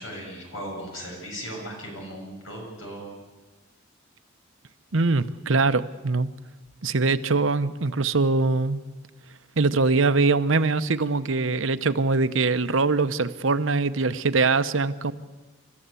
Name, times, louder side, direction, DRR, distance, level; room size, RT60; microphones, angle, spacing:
voice 1, 0.0-3.2, equal, 80° left, 0 dB, 7.4 m, -37 dB
voice 2, 4.9-6.3 6.8-8.8 9.6-15.1, right 3 dB, 80° right, 12 dB, 0.9 m, -22 dB
29.5 x 13.5 x 8.3 m, 1.2 s
head